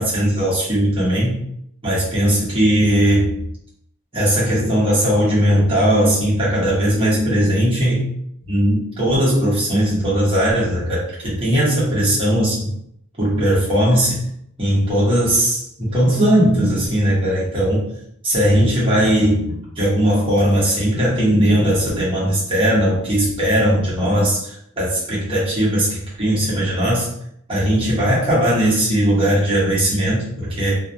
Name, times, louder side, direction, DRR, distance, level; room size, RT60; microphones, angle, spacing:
voice 1, 0.0-1.4 1.8-3.4 4.1-8.0 8.5-12.7 13.2-14.2 14.6-17.8 18.2-27.1 27.5-30.8, equal, 25° right, -8 dB, 0.9 m, -18 dB
2.3 x 2.0 x 2.6 m, 0.73 s
head